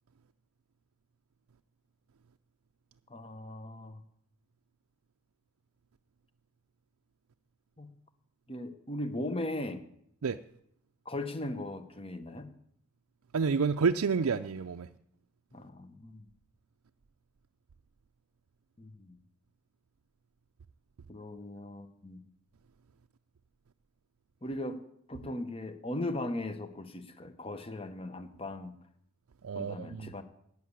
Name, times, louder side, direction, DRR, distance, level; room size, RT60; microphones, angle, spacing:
voice 1, 3.1-4.0 7.8-7.9 8.5-9.8 11.0-12.5 15.5-16.3 18.8-19.2 21.1-22.2 24.4-24.8 25.1-28.7 29.5-30.2, left 1 dB, 25° left, 10 dB, 1.0 m, -38 dB
voice 2, 13.3-14.9 29.4-30.1, right 5 dB, 85° right, 7 dB, 0.5 m, -29 dB
12.5 x 8.2 x 9.8 m, 0.72 s
head